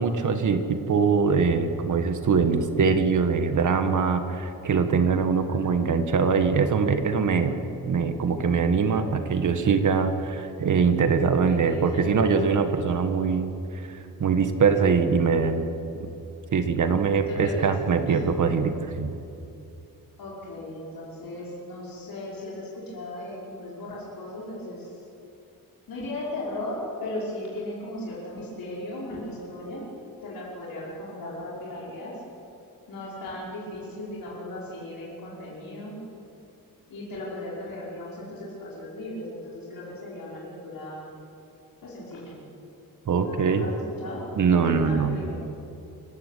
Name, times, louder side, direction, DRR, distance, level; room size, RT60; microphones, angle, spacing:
voice 1, 0.0-7.6 7.8-13.5 13.9-15.7 16.5-19.1 43.1-43.7 44.4-45.2, right 5 dB, 55° right, 8 dB, 1.6 m, -23 dB
voice 2, 11.5-12.6 17.3-17.7 18.1-18.2 20.2-24.9 25.9-29.9 30.2-32.1 32.9-35.9 36.9-41.1 41.8-42.3 43.2-44.2 44.7-45.4, left 1 dB, 75° left, -6 dB, 5.6 m, -37 dB
28.0 x 16.0 x 8.5 m, 2.7 s
wide cardioid pair, 170°, 35 cm